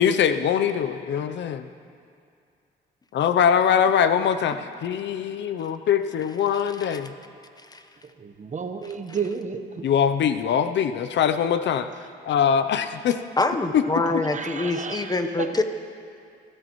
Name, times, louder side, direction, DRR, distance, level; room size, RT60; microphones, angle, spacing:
voice 1, 0.0-1.7 3.1-7.1 9.8-11.9 12.2-13.2 13.7-13.8, left 8 dB, 65° left, 10 dB, 0.6 m, -22 dB
voice 2, 8.2-9.8 14.3-15.0, right 6 dB, 40° right, 7 dB, 1.1 m, -31 dB
voice 3, 8.8-9.2 13.4-15.6, left 2 dB, 20° left, 7 dB, 1.0 m, -25 dB
25.0 x 13.5 x 3.1 m, 2.3 s
cardioid pair, 90°, 20 cm